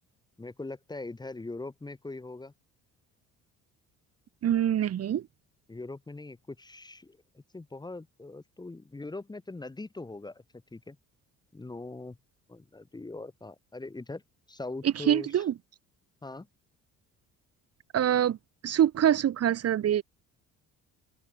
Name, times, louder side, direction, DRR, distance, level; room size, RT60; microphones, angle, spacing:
voice 1, 0.4-2.5 5.7-10.4 10.7-11.0 11.5-12.2 12.5-14.2 14.5-15.4 16.2-16.5, left 2 dB, 15° left, 2.0 m, -41 dB
voice 2, 4.4-5.2 14.8-15.5 17.9-18.4 18.6-20.0, right 10 dB, 50° right, 1.9 m, -25 dB
open air
cardioid pair, 125°, 31 cm